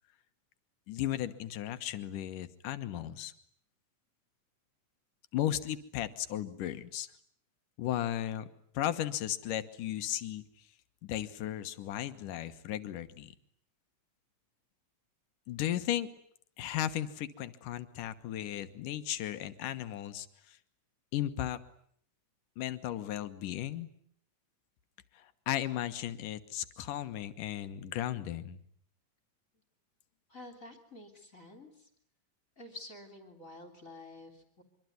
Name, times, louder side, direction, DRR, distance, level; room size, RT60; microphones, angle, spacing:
voice 1, 0.9-3.3 5.3-7.1 7.8-8.5 8.7-10.4 11.0-13.3 15.5-16.1 16.6-20.6 21.1-21.6 22.6-23.9 25.1-28.6, left 12 dB, 85° left, 11 dB, 2.9 m, -35 dB
voice 2, 30.3-31.9 32.6-34.6, left 2 dB, 25° left, 6 dB, 3.6 m, -49 dB
25.0 x 24.5 x 9.5 m, 0.65 s
omnidirectional pair, 3.6 m